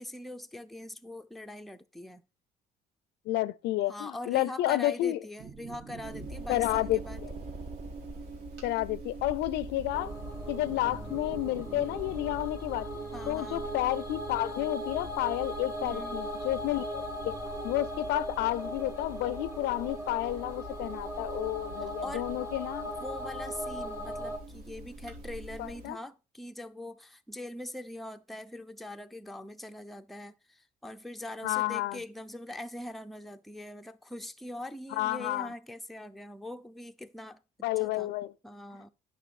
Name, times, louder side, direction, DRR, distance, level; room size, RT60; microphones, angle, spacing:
voice 1, 0.0-2.2 3.9-7.2 13.1-13.7 15.8-16.2 21.8-22.3 23.0-37.4 37.8-38.1 38.4-38.9, left 1 dB, ahead, 0.5 m, -42 dB
voice 2, 3.3-5.2 6.5-7.3 8.6-10.1 10.5-17.4 17.6-22.9 25.6-26.0 31.4-32.0 34.9-35.5 37.6-38.3, left 16 dB, 85° left, 0.5 m, -31 dB
sound 1, 5.4-12.5, right 4 dB, 35° right, 0.8 m, -45 dB
sound 2, 6.0-25.9, right 2 dB, 70° right, 2.5 m, -45 dB
sound 3, 9.9-24.4, equal, 20° right, 1.5 m, -39 dB
9.8 x 5.4 x 4.2 m
cardioid pair, 110°, 17 cm